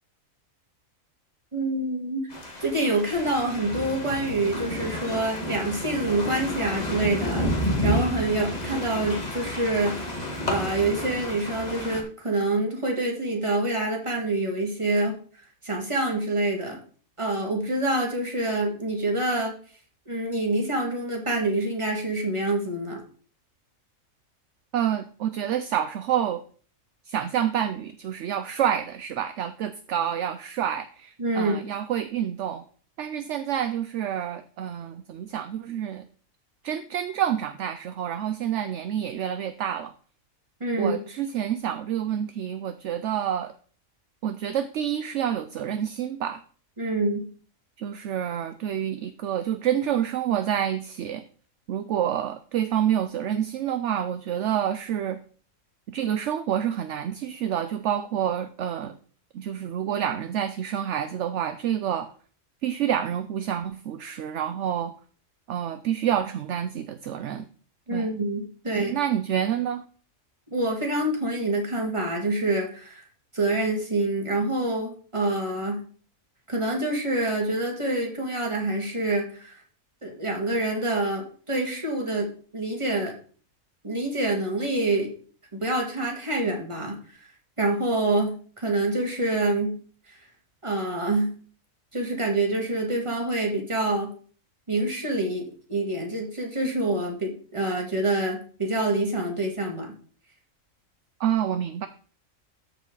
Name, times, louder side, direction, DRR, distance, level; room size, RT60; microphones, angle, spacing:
voice 1, 1.5-2.2 2.6-10.0 10.4-15.1 15.6-16.8 17.2-19.5 20.1-23.0 31.2-31.6 40.6-41.0 46.8-47.3 67.9-69.0 70.5-73.0 73.3-75.8 76.5-79.5 80.0-83.1 83.8-85.1 85.5-87.0 87.6-89.8 90.1-90.2 90.6-91.3 91.9-94.1 94.7-99.9, right 2 dB, 20° right, 0 dB, 2.1 m, -26 dB
sound 1, 2.3-12.0, equal, 30° left, 1.8 m, -31 dB
voice 2, 24.7-26.4 27.1-32.6 33.0-36.0 36.6-39.9 40.8-43.5 44.2-46.4 47.8-51.2 51.7-55.2 55.9-58.9 59.3-62.1 62.6-64.9 65.5-67.5 67.9-68.1 68.8-69.8 101.2-101.9, right 10 dB, 65° right, 11 dB, 0.8 m, -28 dB
13.5 x 5.0 x 3.9 m, 0.43 s
omnidirectional pair, 1.4 m